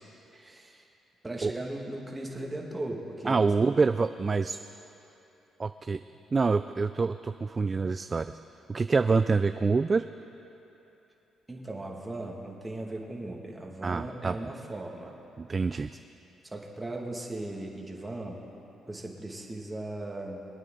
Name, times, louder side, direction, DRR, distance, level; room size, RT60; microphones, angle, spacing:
voice 1, 0.3-0.9 1.2-3.8 11.5-15.1 16.4-18.4 18.9-20.4, right 2 dB, 15° right, -1 dB, 2.1 m, -38 dB
voice 2, 3.3-4.6 5.6-6.0 6.3-8.4 8.7-10.0 13.8-14.5 15.4-15.9, right 4 dB, 30° right, 11 dB, 0.3 m, -26 dB
24.0 x 9.1 x 3.9 m, 3.0 s
cardioid pair, 90°, 0 cm